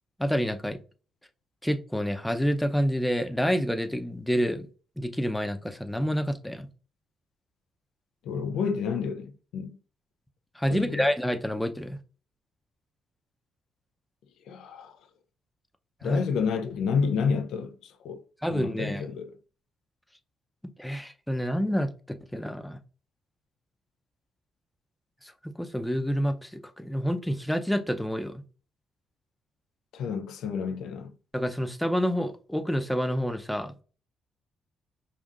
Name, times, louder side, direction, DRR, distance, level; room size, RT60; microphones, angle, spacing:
voice 1, 0.2-0.8 1.6-4.7 5.0-6.7 10.5-12.0 16.0-16.2 18.4-19.0 20.8-22.8 25.2-28.4 31.3-33.8, equal, 5° left, 0.6 m, -28 dB
voice 2, 8.2-9.8 10.7-11.1 14.5-14.9 16.0-18.2 18.5-19.3 29.9-31.1, left 6 dB, 75° left, 0.4 m, -30 dB
5.4 x 2.4 x 2.5 m
supercardioid pair, 55°, 0 cm